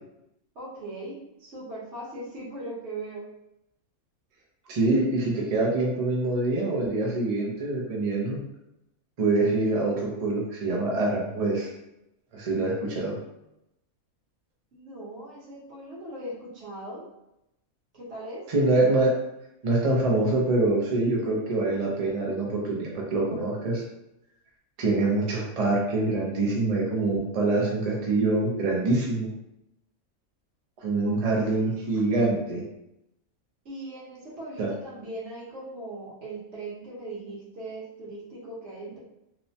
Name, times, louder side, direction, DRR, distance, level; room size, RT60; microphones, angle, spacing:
voice 1, 0.5-3.3 14.7-17.1 17.9-18.4 31.0-31.8 33.6-39.0, right 2 dB, 55° right, -5 dB, 1.1 m, -39 dB
voice 2, 4.7-8.4 9.2-11.7 12.3-13.2 18.5-19.2 19.6-23.8 24.8-29.3 30.8-32.6 34.6-34.7, right 2 dB, 80° right, -2 dB, 0.3 m, -25 dB
2.8 x 2.1 x 2.7 m, 0.87 s
omnidirectional pair, 1.5 m